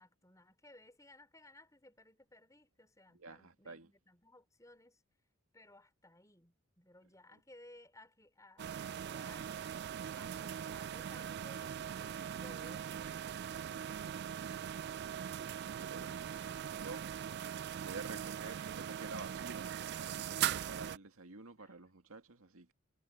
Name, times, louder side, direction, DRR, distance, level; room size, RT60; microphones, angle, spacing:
voice 1, 0.0-5.0 5.5-9.5 10.1-13.9 15.5-15.7 16.6-17.4 20.5-20.7 21.5-21.8, left 1 dB, 15° left, 4.8 m, -61 dB
voice 2, 3.2-3.9 14.1-14.7 15.4-16.5 16.8-17.0 17.8-22.7, right 3 dB, 85° right, 1.9 m, -50 dB
sound 1, 8.6-21.0, right 9 dB, 50° right, 0.3 m, -40 dB
head